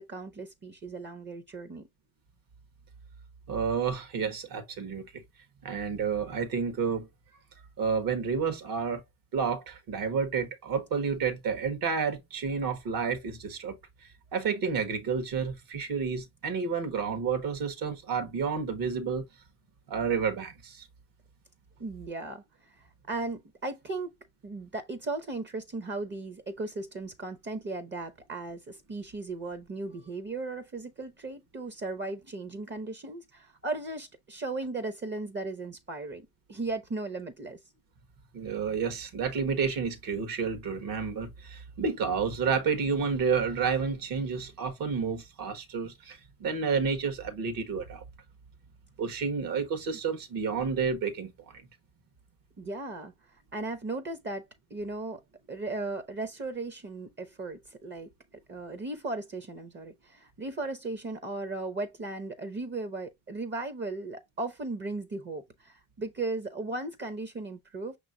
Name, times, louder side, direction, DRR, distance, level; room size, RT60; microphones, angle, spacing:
voice 1, 0.0-1.9 21.8-22.4 22.8-24.1 24.4-37.6 52.6-53.1 53.5-54.4 54.7-55.2 55.5-58.1 58.5-68.0, right 3 dB, 30° right, 0.8 m, -36 dB
voice 2, 3.5-5.2 5.6-7.1 7.8-9.0 9.3-13.8 14.3-19.2 19.9-20.9 38.3-48.0 49.0-51.3, right 6 dB, 60° right, 1.4 m, -30 dB
5.7 x 3.0 x 2.6 m
supercardioid pair, 90°, 38 cm